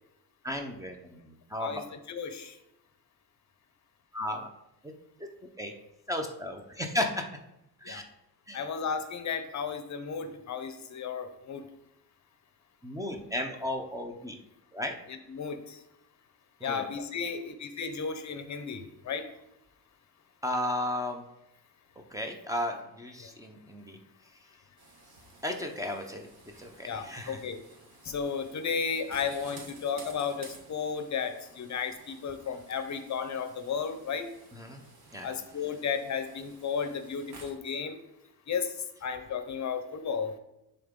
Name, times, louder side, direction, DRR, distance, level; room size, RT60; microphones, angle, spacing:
voice 1, 0.4-1.8 4.1-4.5 5.2-5.3 5.6-5.7 6.1-7.2 7.8-8.0 8.5-8.6 12.8-14.4 14.7-14.9 16.6-16.8 20.4-21.2 22.1-24.0 25.4-26.3 26.6-27.4 34.6-34.8 35.1-35.3, left 1 dB, 10° right, 3 dB, 0.6 m, -34 dB
voice 2, 1.6-2.5 7.9-8.0 8.5-11.6 15.1-15.8 16.6-19.2 23.2-23.3 26.9-27.6 28.0-34.3 35.2-38.0 38.5-38.7 39.0-40.3, left 6 dB, 50° left, 9 dB, 0.7 m, -34 dB
sound 1, 24.8-37.5, right 3 dB, 75° right, 1.9 m, -54 dB
10.5 x 3.9 x 3.6 m, 0.88 s
cardioid pair, 145°, 37 cm